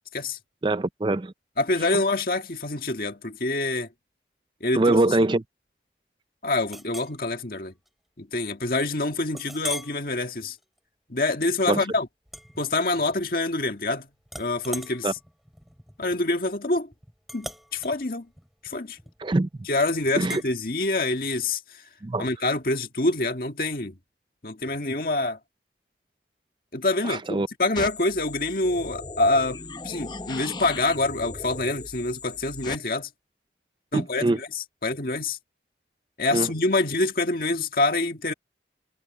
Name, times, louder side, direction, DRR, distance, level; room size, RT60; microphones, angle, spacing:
voice 1, 0.6-1.3 4.7-5.4 11.7-11.8 15.0-15.1 19.2-19.5 20.2-20.4 22.0-22.3 27.0-27.5 33.9-34.4 36.3-36.5, right 2 dB, 25° right, 0.4 m, -23 dB
voice 2, 1.6-3.9 4.6-5.0 6.4-7.7 8.2-10.6 11.1-12.1 12.6-14.1 14.4-15.1 16.0-16.9 17.3-18.3 18.6-19.0 19.7-21.6 22.2-24.0 24.4-25.4 26.7-29.6 29.8-33.1 33.9-35.4 36.2-38.3, left 2 dB, 55° left, 1.9 m, -26 dB
Chink clink, 6.7-7.2 7.7-7.9 8.3-8.4 9.4-10.0 10.5-10.8 12.3-13.2 13.5-13.9 14.3-19.4 20.3-20.5, equal, ahead, 3.8 m, -40 dB
sound 1, 27.8-32.8, left 3 dB, 25° left, 0.8 m, -38 dB
head